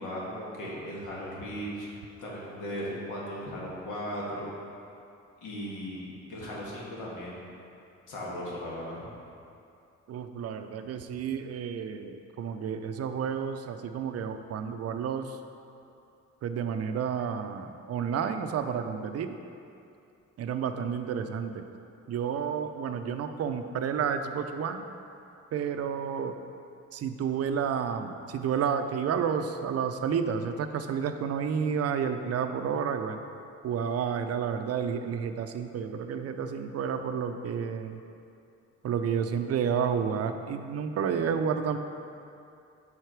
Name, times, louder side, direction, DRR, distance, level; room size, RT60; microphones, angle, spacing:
voice 1, 0.0-1.9 2.2-4.5 5.4-7.6 8.1-9.1, equal, 85° left, -5 dB, 1.5 m, -37 dB
voice 2, 10.1-15.4 16.4-19.4 20.4-21.6 22.1-24.9 25.5-26.4 26.9-33.2 33.6-38.0 38.8-41.8, right 7 dB, 55° right, 8 dB, 0.5 m, -30 dB
5.7 x 4.8 x 4.5 m, 2.6 s
cardioid pair, 90°, 30 cm